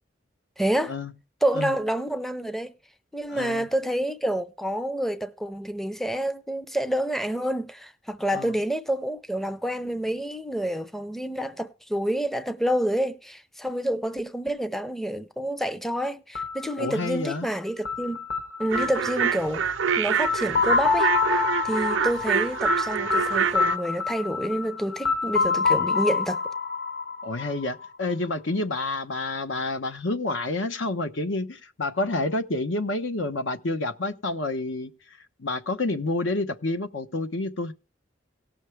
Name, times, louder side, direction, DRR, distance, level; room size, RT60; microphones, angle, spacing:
voice 1, 0.6-0.9 1.4-2.7 3.1-18.2 18.6-19.7 20.0-26.4, right 1 dB, ahead, 0.5 m, -28 dB
voice 2, 3.3-3.7 8.3-8.5 16.8-17.5 27.2-34.9 35.4-37.7, left 2 dB, 75° left, 1.0 m, -29 dB
sound 1, 16.4-28.1, left 5 dB, 55° left, 2.1 m, -27 dB
sound 2, 18.7-23.8, right 7 dB, 90° right, 0.5 m, -26 dB
18.0 x 6.3 x 3.3 m
head